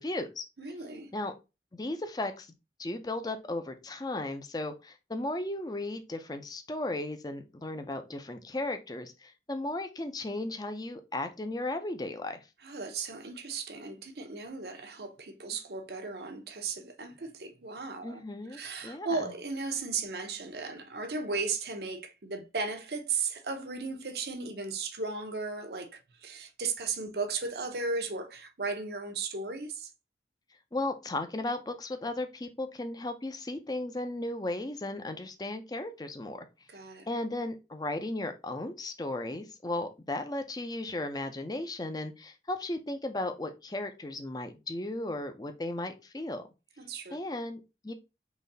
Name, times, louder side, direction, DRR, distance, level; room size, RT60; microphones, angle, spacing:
voice 1, 0.0-0.4 1.1-1.3 1.7-2.5 2.8-12.5 18.0-19.3 30.7-36.5 37.1-46.4 47.1-47.9, left 2 dB, 20° left, 0.5 m, -35 dB
voice 2, 0.6-1.1 12.6-18.2 18.5-29.9 36.7-37.1 46.8-47.2, right 4 dB, 65° right, 0.8 m, -36 dB
4.0 x 3.2 x 3.9 m
head